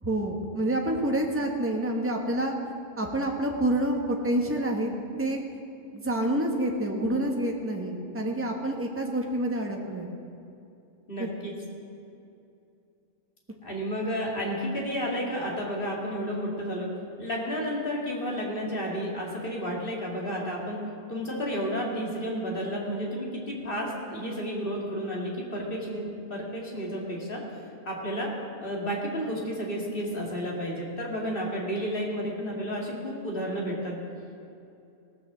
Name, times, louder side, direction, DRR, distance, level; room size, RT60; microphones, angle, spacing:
voice 1, 0.0-2.5 3.0-4.9 5.2-5.4 5.9-10.1 11.2-11.3, right 1 dB, 10° right, 1 dB, 1.1 m, -28 dB
voice 2, 11.1-11.5 13.6-16.9 17.2-20.8 21.1-27.4 27.9-28.3 28.6-34.0, equal, 35° left, -2 dB, 2.4 m, -31 dB
17.5 x 6.4 x 7.3 m, 2.7 s
omnidirectional pair, 1.6 m